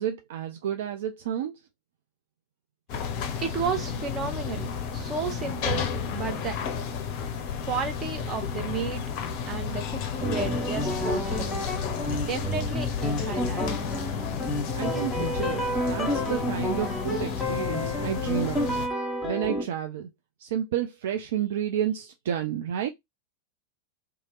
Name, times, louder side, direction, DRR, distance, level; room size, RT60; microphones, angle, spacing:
voice 1, 0.0-1.6 14.7-18.8 19.2-20.1 20.4-22.9, right 9 dB, 55° right, 0.3 m, -31 dB
sound 1, 2.9-18.9, left 6 dB, 45° left, 0.6 m, -32 dB
voice 2, 3.3-6.6 7.6-9.0 9.5-11.5 12.2-13.7, right 5 dB, 30° right, 0.8 m, -33 dB
sound 2, 10.2-19.6, left 1 dB, 5° left, 1.2 m, -30 dB
2.8 x 2.3 x 2.8 m
figure-of-eight pair, 90°, 0 cm